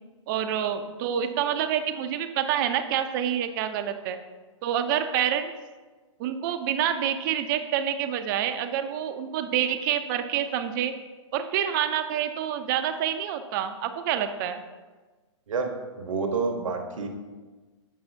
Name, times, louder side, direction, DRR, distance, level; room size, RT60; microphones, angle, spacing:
voice 1, 0.3-4.2 4.6-5.5 6.2-10.9 11.3-14.6, right 9 dB, 40° right, 9 dB, 0.5 m, -27 dB
voice 2, 15.5-17.1, right 4 dB, 75° right, 4 dB, 0.9 m, -29 dB
7.3 x 5.4 x 2.6 m, 1.3 s
hypercardioid pair, 120°, 17 cm